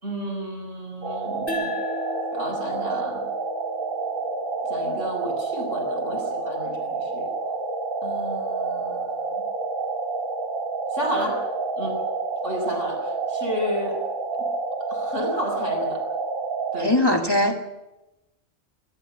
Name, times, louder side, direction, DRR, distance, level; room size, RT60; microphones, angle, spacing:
voice 1, 0.0-1.7 2.3-3.2 4.7-7.3 8.0-9.4 10.9-12.0 12.4-14.0 14.9-16.0 16.7-16.9, equal, 60° right, 1 dB, 6.5 m, -32 dB
sound 1, 1.0-16.9, right 3 dB, 80° right, 3.0 m, -29 dB
sound 2, 1.5-4.7, left 3 dB, 50° left, 4.3 m, -36 dB
voice 2, 16.8-17.5, left 1 dB, 15° left, 1 dB, 2.2 m, -20 dB
26.0 x 13.0 x 9.0 m, 0.97 s
omnidirectional pair, 1.4 m